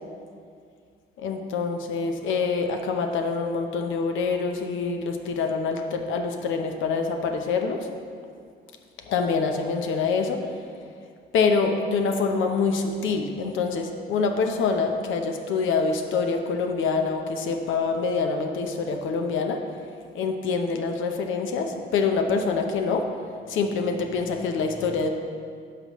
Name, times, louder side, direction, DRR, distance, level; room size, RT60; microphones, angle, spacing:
voice 1, 1.2-7.9 9.1-10.4 11.3-19.6 20.1-23.1 23.5-25.1, left 4 dB, 80° left, 4 dB, 0.7 m, -25 dB
11.0 x 6.0 x 3.0 m, 2.2 s
cardioid pair, 90°, 20 cm